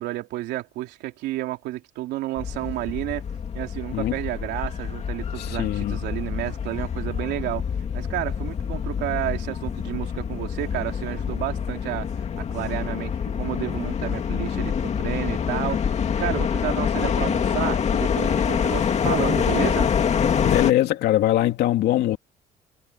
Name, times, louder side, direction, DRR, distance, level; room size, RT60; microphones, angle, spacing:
voice 1, 0.0-3.2 3.5-7.7 7.9-12.1 12.4-19.9, right 16 dB, 85° right, 3.1 m, -31 dB
sound 1, 2.4-20.7, left 7 dB, 40° left, 2.4 m, -26 dB
voice 2, 5.4-6.0 20.4-22.2, left 14 dB, 75° left, 2.7 m, -22 dB
cardioid pair, 110°, 17 cm